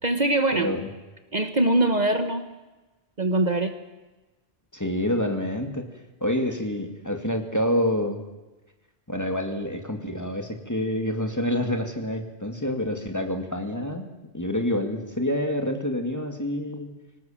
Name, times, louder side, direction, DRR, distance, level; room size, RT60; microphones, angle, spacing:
voice 1, 0.0-0.7 1.3-2.4 3.2-3.7, right 1 dB, 40° right, 8 dB, 1.4 m, -22 dB
voice 2, 0.5-0.9 4.7-5.9 6.2-8.2 9.1-14.0 14.3-16.9, left 1 dB, 15° left, 4 dB, 2.5 m, -27 dB
24.5 x 19.0 x 7.5 m, 1.1 s
omnidirectional pair, 1.1 m